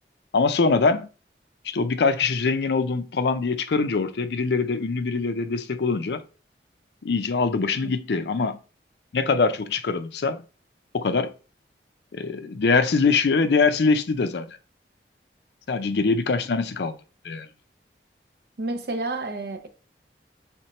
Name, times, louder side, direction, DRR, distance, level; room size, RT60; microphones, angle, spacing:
voice 1, 0.3-1.1 1.6-6.2 7.0-8.6 9.1-10.4 10.9-11.3 12.1-14.6 15.7-17.0 17.2-17.5, left 4 dB, 70° left, 0.5 m, -23 dB
voice 2, 18.6-19.7, right 2 dB, 60° right, 0.7 m, -30 dB
4.4 x 3.6 x 3.0 m
head